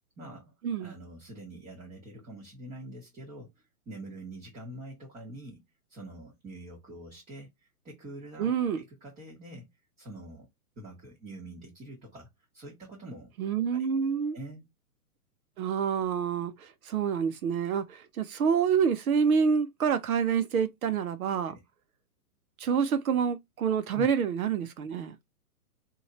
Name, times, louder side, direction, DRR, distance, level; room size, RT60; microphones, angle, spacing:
voice 1, 0.2-0.5 0.8-3.5 3.8-5.6 5.9-8.5 8.7-9.7 10.0-10.5 10.8-12.3 12.5-13.3 13.7-13.9 14.3-14.7 21.4-21.6 23.9-24.1, right 1 dB, 15° right, 1.1 m, -45 dB
voice 2, 8.4-8.8 13.4-14.4 15.6-21.5 22.6-25.2, right 7 dB, 65° right, 1.0 m, -27 dB
3.1 x 2.8 x 4.1 m
hypercardioid pair, 150°, 46 cm